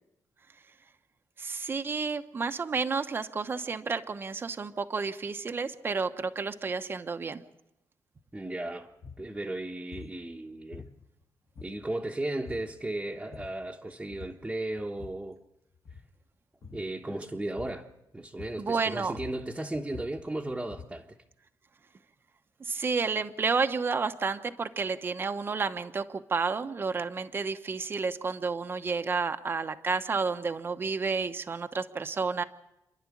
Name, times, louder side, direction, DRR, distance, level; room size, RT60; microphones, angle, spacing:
voice 1, 1.4-7.4 18.6-19.1 22.7-32.4, right 4 dB, 30° right, 0.9 m, -31 dB
voice 2, 8.3-8.9 9.2-10.9 11.6-15.4 16.7-17.9 18.1-21.1, right 1 dB, 10° right, 1.2 m, -35 dB
sound 1, 8.9-9.3 9.9-10.2 10.7-11.2 11.5-12.0 12.4-12.8 13.1-13.7 14.1-14.5 14.8-15.3 15.7-16.1 16.6-16.9 17.6-17.9 18.4-18.7 19.0-21.1, left 5 dB, 50° left, 2.0 m, -47 dB
29.0 x 11.0 x 8.5 m
wide cardioid pair, 140°, 7 cm